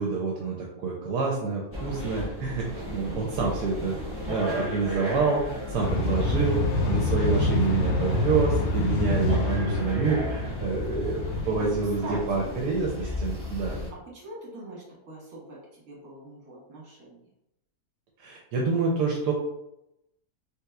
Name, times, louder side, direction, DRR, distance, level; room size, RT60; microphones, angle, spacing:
voice 1, 0.0-2.7 2.9-3.9 4.3-13.8 18.2-19.3, right 4 dB, 80° right, -2 dB, 1.2 m, -27 dB
sound 1, 1.7-13.9, left 1 dB, 10° right, 0.7 m, -35 dB
sound 2, 5.8-11.5, left 2 dB, 85° left, 0.6 m, -26 dB
voice 2, 9.5-10.3 11.5-11.7 12.0-12.5 14.1-15.6 15.8-17.3, right 1 dB, 60° right, -5 dB, 1.7 m, -42 dB
3.4 x 2.9 x 2.3 m, 0.85 s
omnidirectional pair, 1.8 m